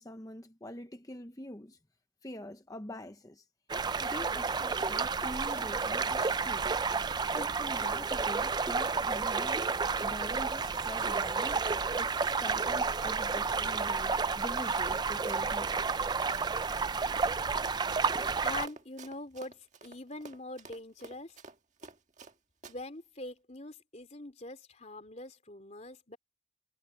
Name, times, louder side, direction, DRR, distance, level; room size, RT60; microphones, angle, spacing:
voice 1, 0.0-1.8 2.2-3.5 4.0-6.7 7.3-11.7 11.9-15.9, left 1 dB, 20° left, 0.8 m, -44 dB
sound 1, 3.7-18.7, right 4 dB, 20° right, 0.4 m, -31 dB
Run, 4.5-22.3 22.6-22.8, right 3 dB, 35° right, 1.7 m, -50 dB
voice 2, 18.4-21.4 22.7-26.2, left 2 dB, 35° left, 3.7 m, -44 dB
head